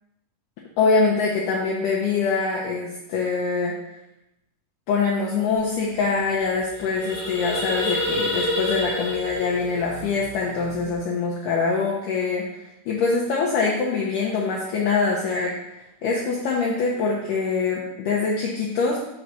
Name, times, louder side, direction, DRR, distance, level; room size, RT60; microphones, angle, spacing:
voice 1, 0.8-3.7 4.9-12.6 12.9-15.5 16.0-19.0, left 4 dB, 70° left, -3 dB, 2.1 m, -24 dB
sound 1, 5.7-5.8 6.0-6.2 6.6-10.9, left 2 dB, 50° left, 0.4 m, -28 dB
5.4 x 4.7 x 6.2 m, 0.88 s
omnidirectional pair, 4.5 m